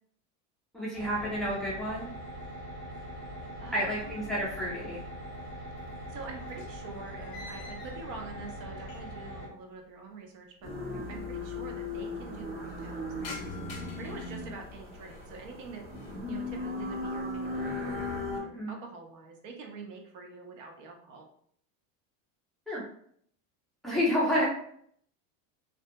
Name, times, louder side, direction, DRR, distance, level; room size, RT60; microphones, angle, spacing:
voice 1, 0.7-2.1 3.7-5.0 18.5-18.7 22.7-22.8 23.8-24.4, equal, ahead, -7 dB, 0.5 m, -30 dB
sound 1, 0.9-9.5, equal, 30° right, 0.9 m, -42 dB
voice 2, 3.6-4.2 6.1-10.7 11.1-13.5 14.0-15.8 16.3-21.3, right 4 dB, 70° right, 3 dB, 0.7 m, -45 dB
sound 2, 4.1-5.0 5.2-9.3 9.6-9.7 10.6-10.7 10.8-10.9 11.2-11.7 12.1-15.3 15.8-16.3 16.7-17.1 17.5-18.4, left 3 dB, 45° left, 0.7 m, -50 dB
sound 3, 10.6-18.4, left 2 dB, 50° right, 1.2 m, -37 dB
2.7 x 2.2 x 2.5 m, 0.64 s
cardioid pair, 165°, 40 cm